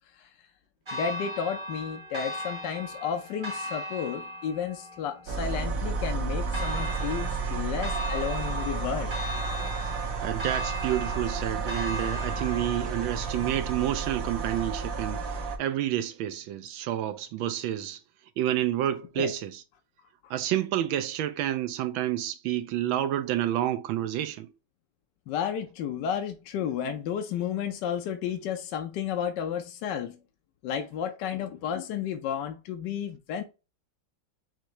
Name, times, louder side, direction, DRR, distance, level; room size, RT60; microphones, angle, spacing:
voice 1, 0.9-9.1 19.2-19.3 20.2-20.3 25.3-30.2 30.6-33.4, left 8 dB, 70° left, 1.2 m, -32 dB
Church bell, 0.9-14.9, equal, 35° right, 0.4 m, -38 dB
sound 1, 5.3-15.6, right 4 dB, 55° right, 1.0 m, -32 dB
voice 2, 9.7-18.0 18.4-19.6 20.3-24.5, right 12 dB, 80° right, 1.4 m, -29 dB
6.0 x 2.7 x 3.0 m
omnidirectional pair, 2.2 m